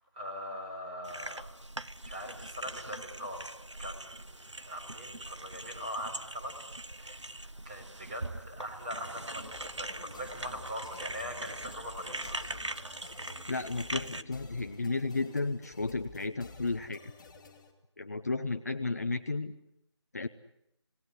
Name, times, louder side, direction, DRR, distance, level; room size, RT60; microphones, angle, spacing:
voice 1, 0.1-1.5 2.0-3.4 3.8-4.3 4.6-6.5 7.0-7.3 7.6-12.8 13.2-13.3, equal, 15° right, 1 dB, 4.9 m, -41 dB
sound 1, 1.0-14.2, right 1 dB, 80° right, 1.3 m, -42 dB
sound 2, 9.4-17.7, left 3 dB, 15° left, 3.0 m, -52 dB
voice 2, 13.5-17.0 18.0-19.5 20.1-20.3, left 3 dB, 35° left, 8 dB, 0.9 m, -33 dB
27.5 x 19.0 x 9.9 m, 0.81 s
figure-of-eight pair, 160°, 15 cm